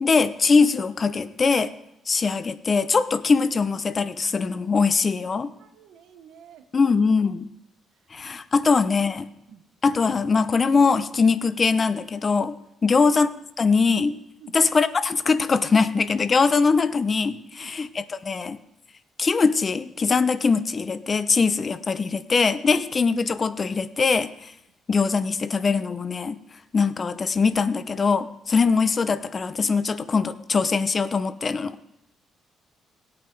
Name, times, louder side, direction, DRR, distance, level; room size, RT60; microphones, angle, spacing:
voice 1, 0.0-1.7 2.1-5.5 6.7-7.5 8.1-9.2 9.8-12.5 12.8-13.3 13.6-14.2 14.5-18.6 19.2-24.5 24.9-26.4 26.7-31.8, left 4 dB, 35° left, 13 dB, 0.8 m, -22 dB
voice 2, 5.6-6.9 9.5-9.6 14.4-14.5 17.6-17.7, right 8 dB, 80° right, 8 dB, 1.2 m, -49 dB
17.5 x 8.7 x 4.6 m, 0.85 s
cardioid pair, 90°, 0 cm